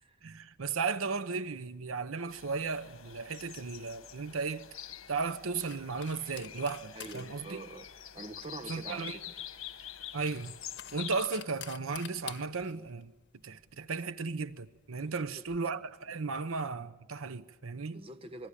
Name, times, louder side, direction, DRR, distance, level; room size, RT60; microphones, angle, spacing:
voice 1, 0.2-4.7 5.1-7.6 8.7-9.2 10.1-10.5 10.9-13.1 13.4-18.0, right 4 dB, 75° right, 0.9 m, -35 dB
sound 1, 2.3-11.3, left 10 dB, 70° left, 1.4 m, -46 dB
sound 2, 4.1-15.6, left 10 dB, 55° left, 1.6 m, -52 dB
voice 2, 6.9-7.9 8.1-9.3 15.2-15.4 17.9-18.5, right 2 dB, 25° right, 1.2 m, -45 dB
27.0 x 22.5 x 10.0 m
head